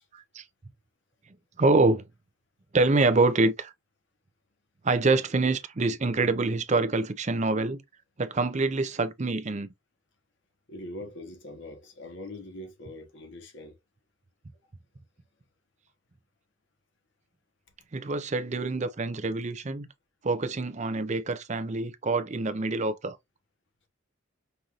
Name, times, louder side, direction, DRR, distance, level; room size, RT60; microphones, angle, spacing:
voice 1, 0.1-0.4 1.6-2.0 2.7-3.7 4.8-7.8 8.2-9.7 17.9-19.9 20.2-23.2, right 3 dB, 35° right, 0.5 m, -26 dB
voice 2, 10.7-13.8, left 1 dB, 60° left, 1.2 m, -42 dB
5.4 x 2.6 x 2.9 m
head